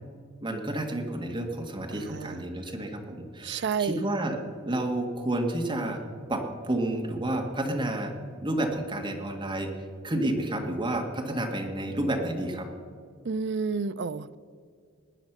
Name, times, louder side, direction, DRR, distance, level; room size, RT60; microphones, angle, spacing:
voice 1, 0.4-4.4 4.6-6.0 6.3-8.1 8.4-9.7 10.0-12.7, right 1 dB, 25° right, 2 dB, 1.8 m, -30 dB
voice 2, 1.9-2.4 3.4-4.0 13.2-14.4, right 5 dB, 60° right, 14 dB, 0.5 m, -30 dB
19.5 x 9.7 x 6.1 m, 2.2 s
head